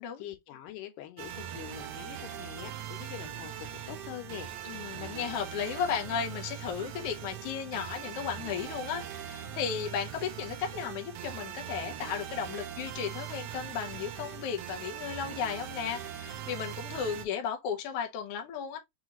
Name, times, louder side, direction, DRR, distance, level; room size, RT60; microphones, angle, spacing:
voice 1, 0.0-4.5, left 13 dB, 90° left, 2.4 m, -44 dB
sound 1, 1.2-17.3, right 10 dB, 85° right, 1.4 m, -41 dB
voice 2, 4.6-18.8, left 7 dB, 65° left, 1.5 m, -35 dB
5.9 x 2.4 x 2.9 m
omnidirectional pair, 3.6 m